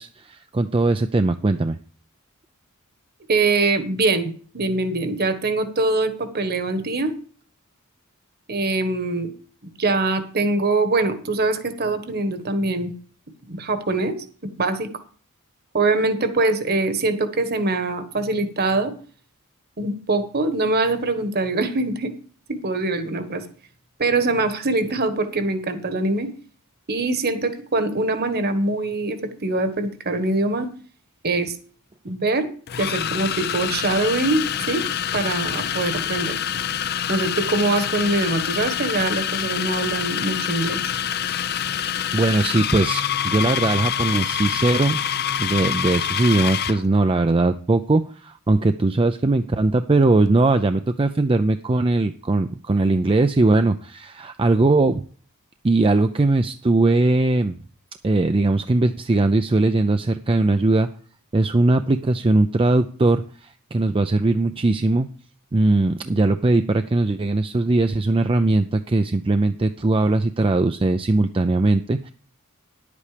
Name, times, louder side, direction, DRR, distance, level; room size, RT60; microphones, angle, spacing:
voice 1, 0.0-1.8 41.7-45.0 45.4-55.0 55.6-57.6 58.0-60.9 61.3-65.1 65.5-72.1, right 2 dB, 25° right, 8 dB, 0.4 m, -20 dB
voice 2, 3.3-7.1 8.5-9.3 9.6-12.9 13.4-14.2 14.4-14.9 15.7-18.9 19.8-22.1 22.5-23.4 24.0-26.3 26.9-30.7 31.2-31.6 32.0-32.5 32.8-34.8 35.1-36.4 37.1-40.8, right 2 dB, 45° right, 10 dB, 1.4 m, -23 dB
sound 1, 31.3-31.5 32.7-46.8, left 9 dB, 45° left, 0.5 m, -26 dB
11.0 x 8.4 x 5.0 m, 0.44 s
head